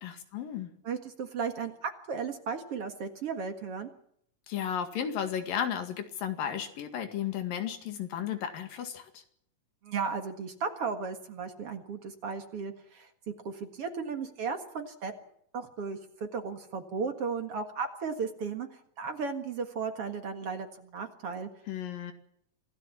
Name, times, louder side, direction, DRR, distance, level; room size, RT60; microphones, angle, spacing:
voice 1, 0.0-0.7 4.5-9.2 21.7-22.1, left 9 dB, 80° left, 7 dB, 3.7 m, -34 dB
voice 2, 0.8-3.9 9.8-15.1 15.5-21.5, right 5 dB, 50° right, 6 dB, 2.4 m, -35 dB
26.5 x 17.0 x 7.4 m, 0.70 s
omnidirectional pair, 3.9 m